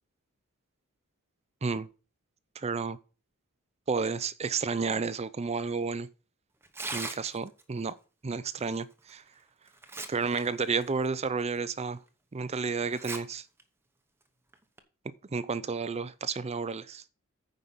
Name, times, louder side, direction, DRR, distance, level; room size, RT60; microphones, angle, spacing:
voice 1, 2.6-3.0 3.9-6.1 6.9-8.0 8.2-9.2 10.1-12.0 12.3-13.4 15.3-17.0, right 4 dB, 30° right, 0.5 m, -31 dB
Tearing, 6.6-7.6 9.1-9.2 9.7-10.4 10.8-10.9 11.6-11.7 12.9-13.2 13.6-13.7 14.5-14.8, right 3 dB, 10° right, 1.0 m, -38 dB
9.4 x 5.2 x 5.6 m
head